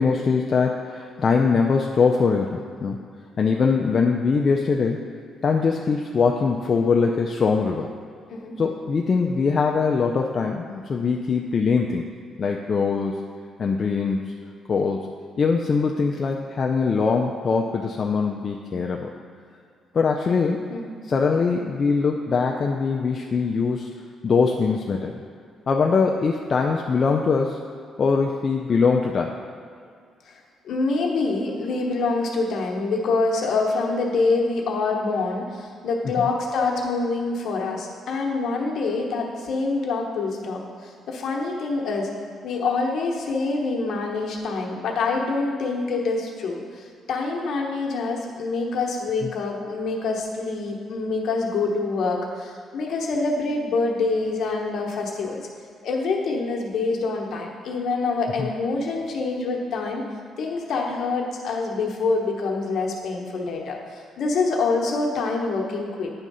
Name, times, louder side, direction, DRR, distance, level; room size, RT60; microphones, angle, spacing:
voice 1, 0.0-3.0 3.4-5.0 5.4-7.9 8.6-12.1 12.4-13.2 13.6-14.2 14.7-15.1 15.4-19.1 19.9-20.7 21.0-24.0 24.2-25.2 25.7-27.6 28.0-29.3 36.2-36.3 58.4-58.5, left 5 dB, 45° left, 1 dB, 0.4 m, -22 dB
voice 2, 30.6-42.1 42.4-55.4 55.8-60.0 60.4-66.1, left 3 dB, 65° left, 0 dB, 1.1 m, -26 dB
9.0 x 3.6 x 5.5 m, 2.2 s
cardioid pair, 90°, 0 cm